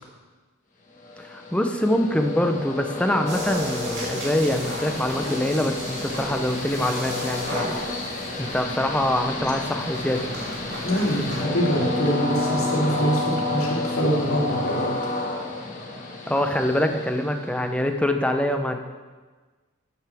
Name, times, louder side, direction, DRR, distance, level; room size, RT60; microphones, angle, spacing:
Train, 1.0-17.8, left 2 dB, 35° left, 1.5 m, -30 dB
voice 1, 1.2-7.7 8.4-10.3 16.3-18.8, left 1 dB, 5° left, 5 dB, 0.6 m, -24 dB
sound 1, 3.2-11.4, right 1 dB, 55° right, 3.1 m, -36 dB
voice 2, 10.8-15.1, equal, 85° left, -5 dB, 3.0 m, -24 dB
12.5 x 9.2 x 3.5 m, 1.4 s
head